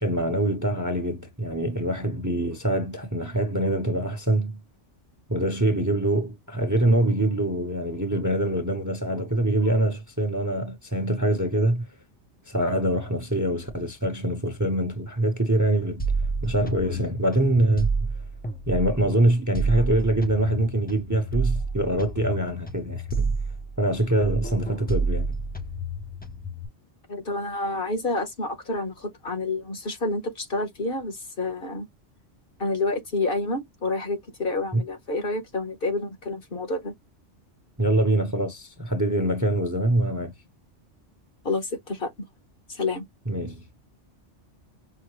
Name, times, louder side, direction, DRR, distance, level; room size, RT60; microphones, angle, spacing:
voice 1, 0.0-4.5 5.3-11.8 12.5-16.0 16.4-18.1 18.7-23.3 23.8-25.4 34.7-34.8 37.8-40.3 43.3-43.6, right 1 dB, 20° right, 0.7 m, -24 dB
sound 1, 16.0-19.1 19.5-24.0 24.2-26.7, right 3 dB, 10° left, 0.5 m, -29 dB
voice 2, 27.1-31.9 32.6-36.9 41.4-42.1 42.7-43.0, left 2 dB, 50° left, 1.2 m, -29 dB
5.7 x 2.1 x 3.0 m
omnidirectional pair, 1.2 m